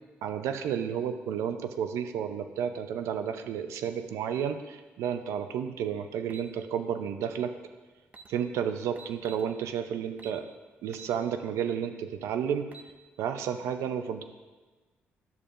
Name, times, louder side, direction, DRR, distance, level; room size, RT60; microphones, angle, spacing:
voice 1, 0.2-7.5 8.3-10.5 10.8-12.7 13.2-14.2, right 8 dB, 80° right, 8 dB, 0.5 m, -31 dB
sound 1, 6.3-6.5 7.7-7.8 8.1-8.3 9.0-9.5 10.2-10.4 10.9-11.2 11.6-11.7 12.5-12.9, right 5 dB, 35° right, 0.6 m, -49 dB
11.0 x 6.7 x 2.5 m, 1.3 s
cardioid pair, 80°, 5 cm